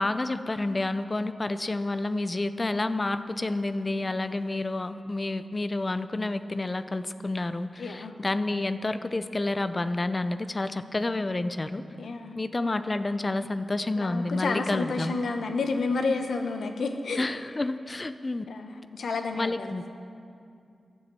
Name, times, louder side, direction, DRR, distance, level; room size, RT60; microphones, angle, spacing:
voice 1, 0.0-11.8 12.4-15.1 17.2-18.5 19.4-19.9, left 2 dB, 20° left, 12 dB, 0.4 m, -29 dB
voice 2, 7.8-8.2 11.9-12.4 14.0-17.3 18.5-19.7, left 3 dB, 70° left, 6 dB, 0.9 m, -30 dB
13.5 x 7.2 x 7.6 m, 2.5 s
wide cardioid pair, 180°, 0 cm